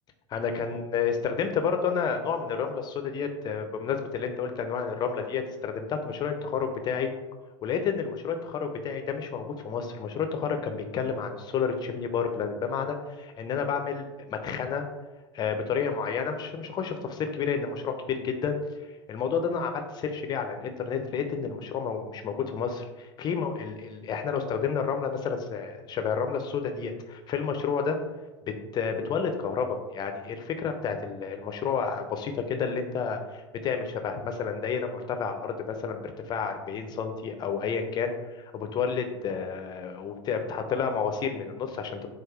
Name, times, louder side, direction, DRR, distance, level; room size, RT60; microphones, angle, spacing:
voice 1, 0.3-7.1 7.6-14.8 15.3-18.6 19.1-28.0 28.7-42.1, left 6 dB, 25° left, 5 dB, 0.8 m, -30 dB
7.8 x 2.6 x 4.9 m, 1.2 s
figure-of-eight pair, 85°, 15 cm